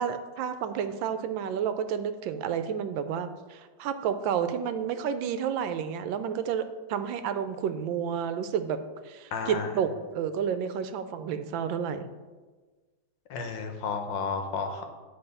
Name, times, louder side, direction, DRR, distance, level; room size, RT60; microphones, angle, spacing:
voice 1, 0.0-8.8 9.1-12.1, right 8 dB, 90° right, 10 dB, 1.3 m, -30 dB
voice 2, 9.3-9.7 13.3-14.9, left 5 dB, 75° left, 5 dB, 1.6 m, -32 dB
9.9 x 3.6 x 5.4 m, 1.3 s
omnidirectional pair, 2.0 m